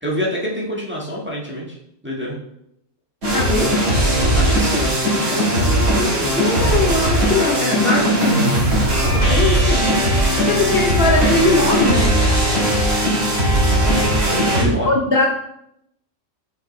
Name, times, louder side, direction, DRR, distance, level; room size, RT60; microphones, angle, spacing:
voice 1, 0.0-1.8 2.0-2.4 4.3-6.3 6.6-6.9 14.5-14.9, equal, 10° right, -4 dB, 1.5 m, -26 dB
sound 1, 3.2-14.6, right 1 dB, 65° right, 2.7 m, -18 dB
voice 2, 3.3-3.8 6.3-8.6 9.1-10.0 10.4-12.1 14.9-15.3, left 3 dB, 50° left, -1 dB, 1.1 m, -20 dB
7.6 x 5.8 x 3.2 m, 0.76 s
omnidirectional pair, 1.4 m